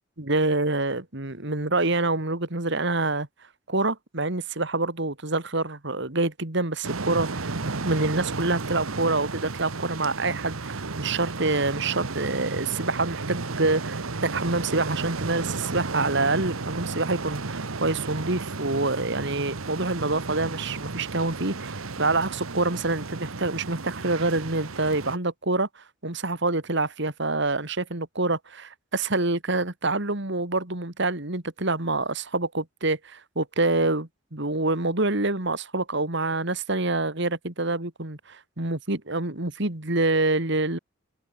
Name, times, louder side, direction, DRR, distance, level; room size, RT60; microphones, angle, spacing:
voice 1, 0.2-3.3 3.7-40.8, right 2 dB, 60° right, 2.5 m, -26 dB
sound 1, 6.8-25.2, right 3 dB, 90° right, 1.3 m, -33 dB
head